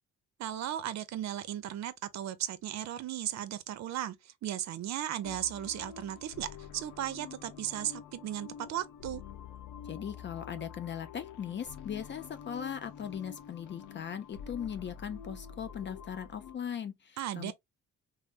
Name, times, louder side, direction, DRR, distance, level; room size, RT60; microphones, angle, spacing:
voice 1, 0.4-9.2 17.2-17.5, right 11 dB, 65° right, 0.5 m, -36 dB
sound 1, 5.2-16.5, left 8 dB, 85° left, 0.7 m, -47 dB
voice 2, 9.8-17.5, left 8 dB, 40° left, 0.4 m, -39 dB
3.3 x 2.0 x 2.4 m
cardioid pair, 90°, 30 cm